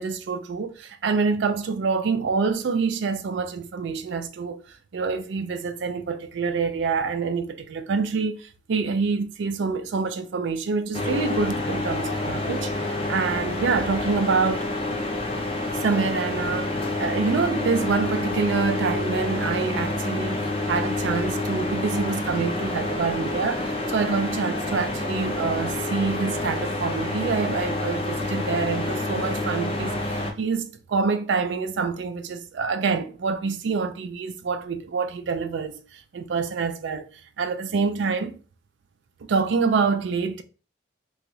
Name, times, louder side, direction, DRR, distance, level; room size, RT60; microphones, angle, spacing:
voice 1, 0.0-14.7 15.7-37.1 37.4-38.3 39.2-40.4, right 5 dB, 75° right, 0.4 m, -26 dB
sound 1, 10.9-30.3, left 2 dB, 30° left, 0.4 m, -28 dB
3.0 x 2.4 x 3.0 m
head